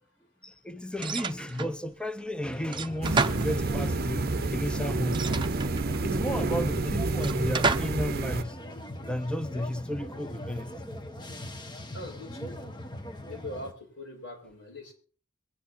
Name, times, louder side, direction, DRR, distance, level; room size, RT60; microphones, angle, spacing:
voice 1, 0.4-5.3 6.0-8.6 9.0-10.7, left 1 dB, 5° left, 0.8 m, -33 dB
sound 1, 1.0-1.8 2.7-4.0 5.1-6.1 7.2-8.1, right 3 dB, 25° right, 0.9 m, -31 dB
sound 2, 2.4-13.7, left 1 dB, 25° left, 1.4 m, -41 dB
sound 3, 3.0-8.4, right 3 dB, 55° right, 0.8 m, -29 dB
voice 2, 11.9-12.7 13.3-14.9, left 2 dB, 90° left, 6.9 m, -42 dB
23.0 x 10.0 x 4.0 m
head